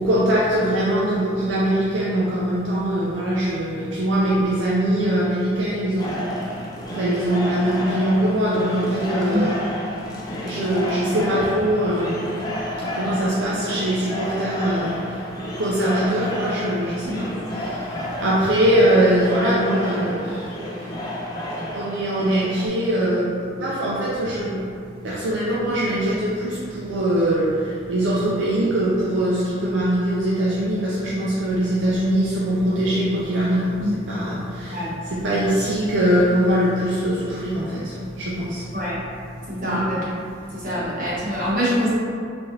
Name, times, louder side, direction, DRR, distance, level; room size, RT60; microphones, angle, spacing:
voice 1, 0.0-6.6 6.9-9.6 10.4-12.3 12.8-20.8 21.6-24.7 25.0-38.7 39.4-39.8 40.5-40.7, right 1 dB, 75° right, -7 dB, 0.4 m, -22 dB
sound 1, 6.0-22.7, left 1 dB, 20° left, 0.3 m, -31 dB
voice 2, 39.5-40.0 40.5-41.9, equal, 45° right, -9 dB, 1.1 m, -24 dB
3.2 x 2.5 x 2.5 m, 2.3 s
head